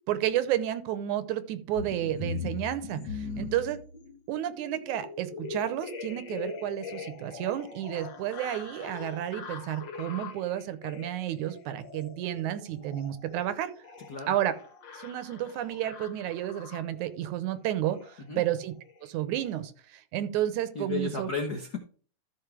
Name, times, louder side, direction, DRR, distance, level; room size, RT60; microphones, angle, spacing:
voice 1, 0.1-3.8 4.3-13.7 14.3-14.5 14.9-18.8 19.0-21.3, right 12 dB, 80° right, 13 dB, 2.2 m, -31 dB
sound 1, 1.8-17.1 17.9-18.1 18.4-18.6 18.9-19.1 19.4-19.6, left 5 dB, 60° left, 1.3 m, -42 dB
voice 2, 3.2-3.5 14.1-14.4 18.3-18.4 20.7-21.8, left 4 dB, 80° left, 3 dB, 0.8 m, -34 dB
13.5 x 5.5 x 3.3 m, 0.42 s
omnidirectional pair, 3.5 m